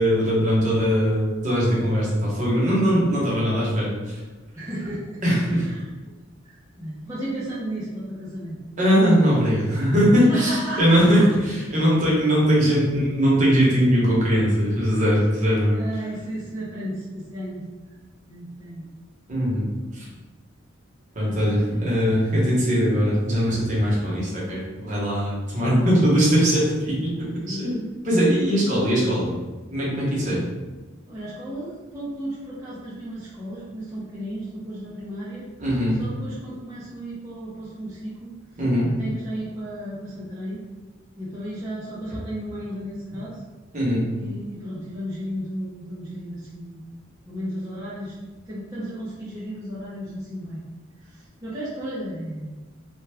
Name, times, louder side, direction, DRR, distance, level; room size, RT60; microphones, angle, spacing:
voice 1, 0.0-4.2 5.2-5.7 8.8-15.8 19.3-19.6 19.9-20.1 21.1-27.8 28.0-29.3 29.7-30.4 35.6-36.0 38.6-38.9 43.7-44.1, equal, 35° right, -6 dB, 1.0 m, -20 dB
voice 2, 4.5-6.1 6.4-8.6 10.2-11.3 15.7-17.7 18.3-18.9 20.0-20.1 21.4-21.8 27.3-27.7 28.5-28.8 31.1-35.5 36.0-38.3 38.8-40.6 41.2-43.4 44.1-46.8 47.3-48.1 48.5-50.6 51.0-52.6, right 1 dB, 15° right, -11 dB, 0.6 m, -34 dB
3.3 x 2.3 x 3.4 m, 1.2 s
head